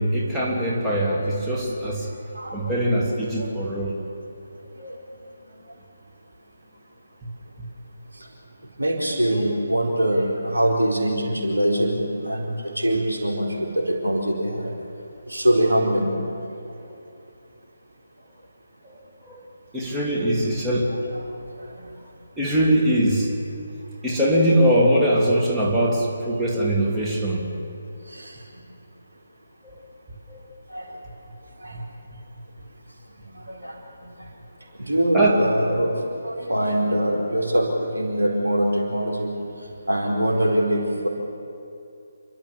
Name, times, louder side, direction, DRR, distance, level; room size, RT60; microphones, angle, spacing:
voice 1, 0.0-2.1 2.5-3.9 19.3-19.4 19.7-20.9 22.4-23.3 24.0-27.4 30.3-30.4 35.1-35.4, right 1 dB, 5° right, -5 dB, 3.0 m, -21 dB
voice 2, 2.3-2.7 3.4-3.5 4.7-5.0 8.2-8.3 8.8-14.7 15.3-16.2 21.1-21.3 21.6-21.9 28.1-28.6 30.7-31.0 31.6-31.8 33.3-34.1 34.8-35.9 36.2-39.3 39.9-41.1, right 1 dB, 90° right, 0 dB, 4.4 m, -23 dB
28.5 x 12.5 x 8.4 m, 2.6 s
figure-of-eight pair, 150°, 0 cm